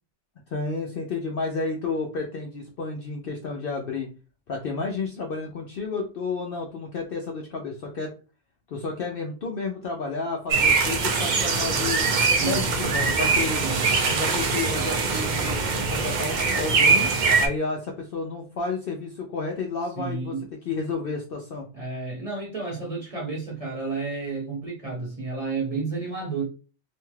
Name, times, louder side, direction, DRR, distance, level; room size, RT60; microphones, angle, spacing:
voice 1, 0.5-4.1 4.5-8.1 8.7-12.0 12.4-13.6 14.1-17.1 17.4-20.4 20.7-21.7, left 4 dB, 65° left, 0.6 m, -31 dB
sound 1, 10.5-17.5, right 4 dB, 60° right, 0.5 m, -22 dB
voice 2, 12.3-12.6 13.6-13.9 19.9-20.4 21.7-26.4, right 4 dB, 30° right, 0.8 m, -31 dB
2.7 x 2.2 x 3.1 m
omnidirectional pair, 1.3 m